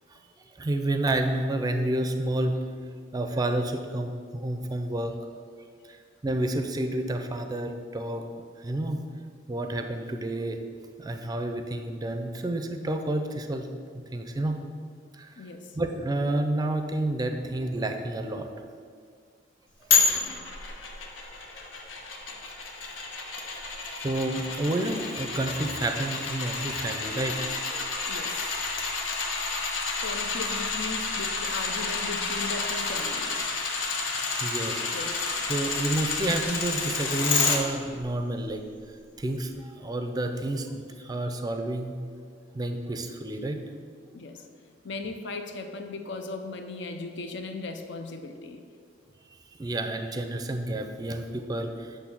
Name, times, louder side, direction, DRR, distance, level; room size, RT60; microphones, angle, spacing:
voice 1, 0.6-5.1 5.9-6.0 6.2-8.2 8.6-9.0 9.5-10.6 11.0-13.7 14.1-14.6 15.1-15.5 15.7-18.5 24.0-27.8 29.9-30.0 34.4-34.9 35.5-38.6 39.2-42.0 42.5-43.6 49.6-52.0, right 1 dB, 20° right, 6 dB, 0.5 m, -30 dB
voice 2, 15.4-15.7 20.1-20.5 28.1-28.6 30.0-33.4 34.9-35.3 44.1-44.4 44.8-48.6, left 3 dB, 65° left, 7 dB, 0.6 m, -37 dB
sound 1, 19.9-37.6 38.0-38.1, left 4 dB, 85° left, 0.9 m, -30 dB
8.2 x 3.2 x 6.2 m, 2.1 s
head